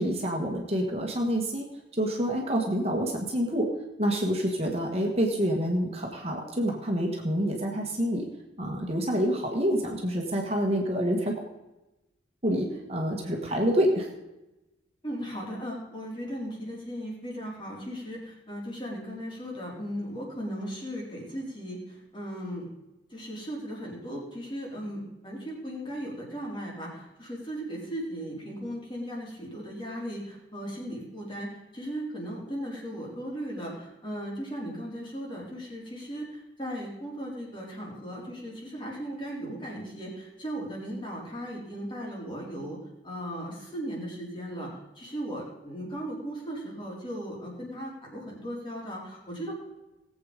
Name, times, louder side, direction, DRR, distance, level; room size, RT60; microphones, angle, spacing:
voice 1, 0.0-1.6 2.0-3.7 4.0-8.3 8.6-11.4 12.4-14.1, equal, 35° right, 1 dB, 1.7 m, -27 dB
voice 2, 15.0-22.7 23.1-42.8 43.0-49.5, equal, 25° left, -3 dB, 3.9 m, -37 dB
18.5 x 8.1 x 5.2 m, 1.0 s
head